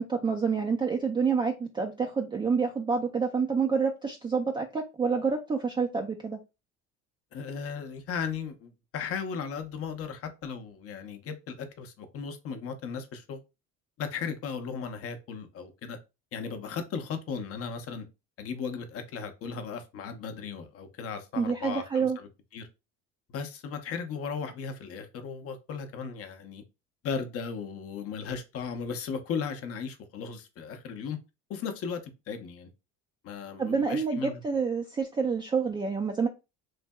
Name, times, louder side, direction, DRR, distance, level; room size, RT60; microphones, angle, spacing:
voice 1, 0.0-6.4 21.4-22.2 33.6-36.3, right 5 dB, 15° right, 0.3 m, -28 dB
voice 2, 7.3-13.4 14.0-16.0 16.3-18.1 18.4-22.7 23.3-26.6 27.0-31.2 31.5-32.7 33.2-34.4, left 6 dB, 50° left, 0.7 m, -36 dB
3.2 x 2.6 x 2.2 m
supercardioid pair, 100°, 30 cm